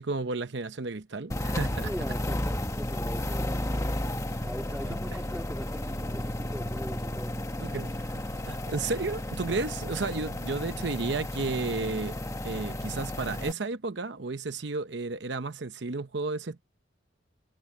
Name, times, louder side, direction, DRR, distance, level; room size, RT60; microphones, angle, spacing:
voice 1, 0.0-1.9 7.6-12.2 12.4-16.6, right 3 dB, 65° right, 0.8 m, -33 dB
sound 1, 1.3-13.5, left 1 dB, 15° left, 1.2 m, -33 dB
voice 2, 1.8-4.0 4.4-7.4 7.8-7.9, equal, 5° right, 2.3 m, -41 dB
head